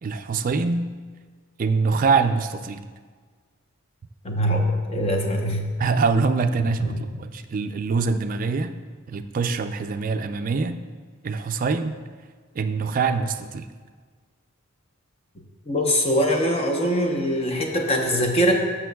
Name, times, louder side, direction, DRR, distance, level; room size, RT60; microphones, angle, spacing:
voice 1, 0.0-0.9 1.6-2.8 5.8-8.8 9.1-10.8 11.2-12.0 12.6-13.7, right 4 dB, 40° right, 8 dB, 0.4 m, -24 dB
voice 2, 4.2-5.7 6.8-7.0 15.7-18.5, equal, 30° left, 2 dB, 0.8 m, -22 dB
14.0 x 6.1 x 2.3 m, 1.5 s
head